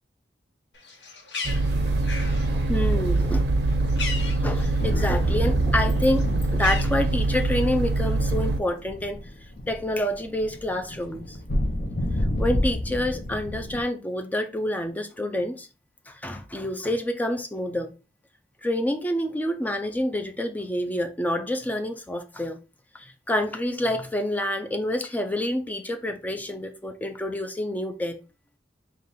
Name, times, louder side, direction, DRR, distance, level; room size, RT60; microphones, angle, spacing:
Bird, 0.7-5.4 5.7-7.6, left 4 dB, 80° left, 0.9 m, -38 dB
sound 1, 1.4-8.6, right 2 dB, 65° right, 0.5 m, -24 dB
voice 1, 2.7-3.5 3.7-3.9 4.4-6.3 6.5-9.2 9.7-11.4 12.4-15.7 16.1-17.9 18.6-22.6 22.9-28.2, left 1 dB, 10° left, 0.3 m, -28 dB
sound 2, 4.8-13.8, left 1 dB, 55° left, 0.7 m, -31 dB
4.1 x 2.3 x 3.7 m
head